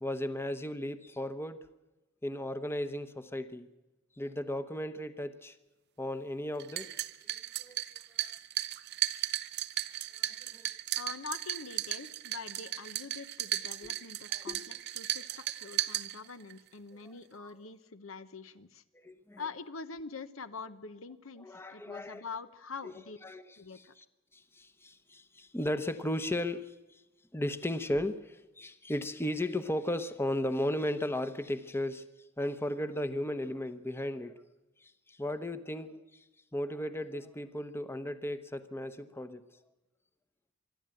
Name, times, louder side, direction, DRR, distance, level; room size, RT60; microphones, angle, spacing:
voice 1, 0.0-1.6 2.2-3.7 4.2-5.6 6.0-6.9 7.6-7.8 8.2-8.3 10.2-10.3 10.5-10.7 13.8-13.9 14.3-14.6 16.9-17.0 17.4-17.5 18.9-19.4 21.4-22.2 22.8-22.9 23.2-23.5 23.7-23.8 24.3-27.0 27.3-32.1 32.4-34.4 34.8-36.2 36.5-39.4, left 1 dB, 10° left, 0.9 m, -35 dB
sound 1, 6.6-16.6, right 14 dB, 55° right, 0.6 m, -36 dB
voice 2, 11.0-18.8 19.4-23.2 23.6-23.9, left 4 dB, 75° left, 1.0 m, -44 dB
24.5 x 12.0 x 9.0 m
head